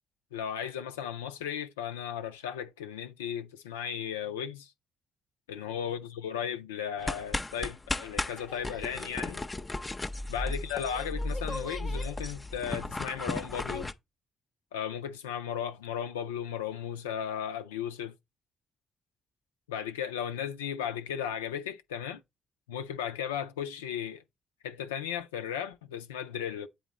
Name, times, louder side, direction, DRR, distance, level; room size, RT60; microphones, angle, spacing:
voice 1, 0.3-4.7 5.5-9.4 10.3-13.9 14.7-18.2 19.7-22.2 22.7-24.2 24.6-26.7, left 8 dB, 90° left, 0.3 m, -35 dB
sound 1, 7.0-13.9, left 2 dB, 25° left, 0.6 m, -35 dB
8.1 x 3.8 x 4.0 m
hypercardioid pair, 45°, 0 cm